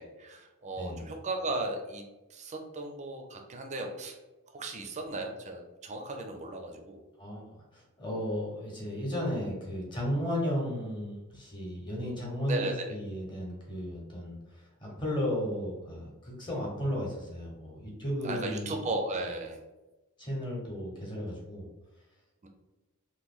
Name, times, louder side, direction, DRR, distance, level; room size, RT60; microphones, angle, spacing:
voice 1, 0.0-2.0 2.3-4.2 4.5-7.0 12.5-13.0 18.2-19.6 22.4-22.5, right 2 dB, 30° right, 3 dB, 0.5 m, -36 dB
voice 2, 7.2-18.7 20.2-21.7, equal, 20° left, -3 dB, 0.9 m, -34 dB
3.0 x 2.2 x 3.6 m, 1.1 s
head